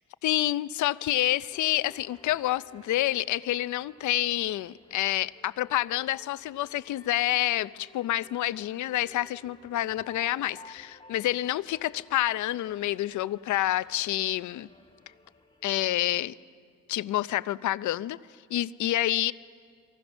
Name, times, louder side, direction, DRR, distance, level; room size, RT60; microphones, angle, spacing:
voice 1, 0.2-14.7 15.6-16.3 16.9-18.2 18.5-19.3, left 14 dB, 75° left, 16 dB, 0.7 m, -28 dB
sound 1, 1.5-16.2, left 2 dB, 15° left, 1.9 m, -55 dB
28.0 x 23.5 x 6.3 m, 2.1 s
cardioid pair, 90°, 30 cm